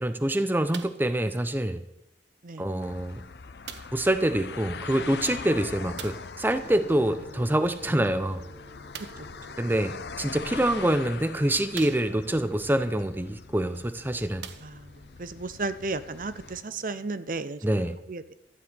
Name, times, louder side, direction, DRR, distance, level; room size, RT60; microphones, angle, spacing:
voice 1, 0.0-1.8 2.6-3.2 3.9-8.4 9.6-14.4 17.6-18.0, right 1 dB, 10° right, 0.6 m, -26 dB
sound 1, 0.7-1.1 2.0-2.1 3.6-4.1 5.9-6.4 8.9-9.3 10.3-10.4 11.0-11.1 11.7-12.4 13.7-13.8 14.3-15.1 15.9-16.0, right 8 dB, 90° right, 0.9 m, -42 dB
sound 2, 2.8-16.6, left 4 dB, 70° left, 0.7 m, -42 dB
Gong, 6.6-17.3, equal, 20° left, 2.2 m, -51 dB
voice 2, 15.2-17.6 18.1-18.3, right 3 dB, 50° right, 0.7 m, -34 dB
13.0 x 7.1 x 9.5 m
head